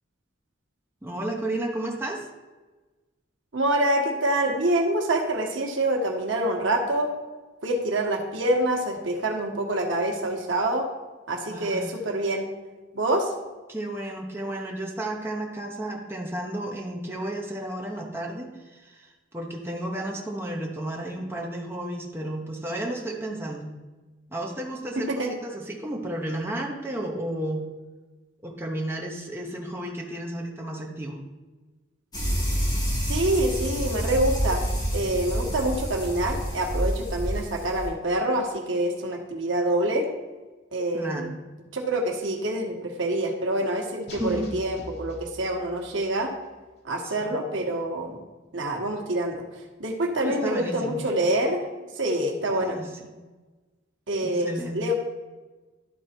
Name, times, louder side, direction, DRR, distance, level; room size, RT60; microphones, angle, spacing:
voice 1, 1.0-2.3 11.5-12.0 13.7-23.7 24.3-27.6 28.4-31.2 40.9-41.3 44.2-44.6 47.0-47.5 50.2-51.0 52.5-53.2 54.2-54.8, right 1 dB, 10° right, -1 dB, 0.9 m, -33 dB
voice 2, 3.5-7.1 7.6-10.9 11.3-12.5 12.9-13.3 25.0-25.3 33.1-34.6 34.9-40.0 40.7-41.3 41.7-46.3 46.8-48.2 48.5-49.4 49.8-51.6 52.0-52.8 54.1-54.9, right 1 dB, 80° right, 2 dB, 1.3 m, -26 dB
sound 1, 32.1-37.9, equal, 20° left, 2.4 m, -28 dB
sound 2, 44.1-46.0, equal, 60° left, 1.6 m, -42 dB
11.5 x 4.0 x 4.4 m, 1.2 s
head